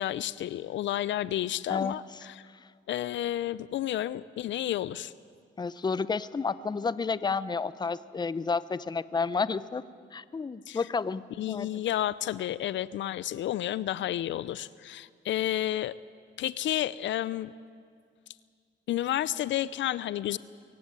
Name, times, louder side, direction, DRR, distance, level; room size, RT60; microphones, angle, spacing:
voice 1, 0.0-2.3 2.9-5.1 10.7-10.8 11.4-15.9 16.4-17.5 18.9-20.4, left 12 dB, 70° left, 18 dB, 0.5 m, -31 dB
voice 2, 5.6-9.8 10.1-11.7, left 5 dB, 20° left, 16 dB, 0.6 m, -31 dB
23.5 x 16.0 x 8.7 m, 2.1 s
cardioid pair, 90°, 20 cm